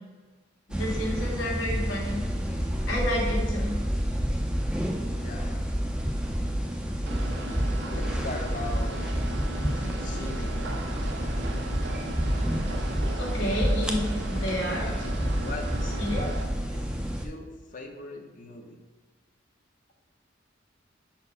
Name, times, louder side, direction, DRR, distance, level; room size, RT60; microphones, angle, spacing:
voice 1, 0.7-2.2 2.9-3.8 13.2-14.0 14.3-14.9 16.0-16.2, equal, 80° left, -2 dB, 1.8 m, -30 dB
sound 1, 0.7-17.2, equal, 5° right, 0.4 m, -29 dB
voice 2, 5.0-5.7 7.9-9.2 9.5-10.5 14.7-15.0 15.4-15.6 16.0-16.4 16.7-16.8 17.1-18.8, left 2 dB, 40° left, 3 dB, 0.7 m, -40 dB
sound 2, 7.1-16.4, right 2 dB, 60° right, 0.7 m, -39 dB
4.6 x 4.4 x 5.5 m, 1.3 s
head